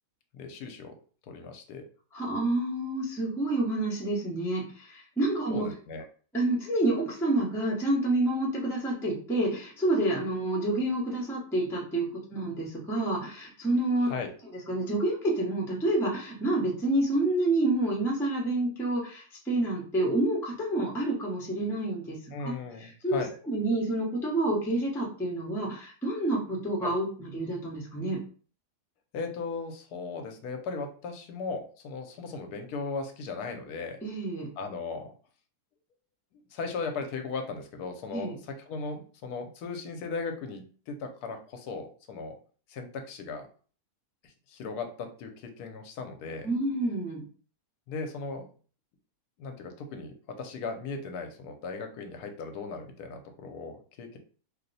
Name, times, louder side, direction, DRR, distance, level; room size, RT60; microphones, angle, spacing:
voice 1, 0.3-0.9 1.3-1.8 5.5-6.0 14.0-14.3 22.3-23.3 26.8-26.9 29.1-34.0 34.6-35.1 36.5-42.4 42.7-43.5 44.2-46.5 47.9-48.5 49.4-54.2, left 4 dB, 80° left, 5 dB, 1.1 m, -37 dB
voice 2, 2.1-5.7 6.3-14.1 14.7-22.5 22.8-23.2 23.5-28.2 34.0-34.5 38.1-38.4 46.4-47.2, right 2 dB, 5° left, -2 dB, 0.4 m, -28 dB
2.8 x 2.0 x 3.9 m, 0.41 s
omnidirectional pair, 1.7 m